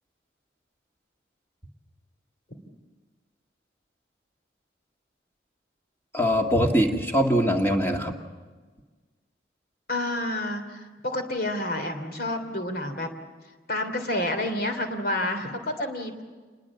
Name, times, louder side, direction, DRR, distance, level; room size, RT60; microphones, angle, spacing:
voice 1, 6.1-8.2, equal, 10° left, 2 dB, 2.1 m, -22 dB
voice 2, 9.9-13.1 13.7-16.2, left 1 dB, 55° left, 6 dB, 3.1 m, -29 dB
27.5 x 21.0 x 7.3 m, 1.4 s
head